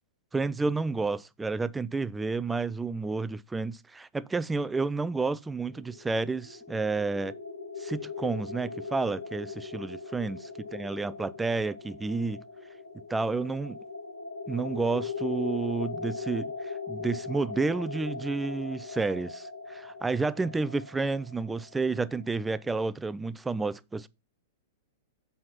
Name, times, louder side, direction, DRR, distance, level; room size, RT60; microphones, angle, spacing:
voice 1, 0.3-7.3 7.8-10.4 10.7-12.4 13.1-13.8 14.5-24.1, right 3 dB, 10° right, 0.4 m, -30 dB
sound 1, 5.6-22.5, left 5 dB, 85° left, 1.1 m, -40 dB
7.6 x 4.2 x 5.7 m
figure-of-eight pair, 100°, 0 cm